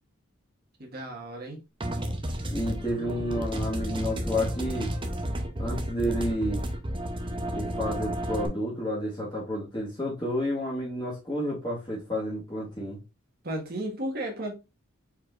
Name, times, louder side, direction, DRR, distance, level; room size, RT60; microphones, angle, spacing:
voice 1, 0.8-1.6 13.4-14.5, right 1 dB, 45° right, 1.5 m, -34 dB
sound 1, 1.8-8.5, equal, 25° right, 0.7 m, -31 dB
voice 2, 2.5-4.9 5.6-6.6 7.5-13.0, equal, 20° left, 1.5 m, -30 dB
4.8 x 4.4 x 2.5 m
head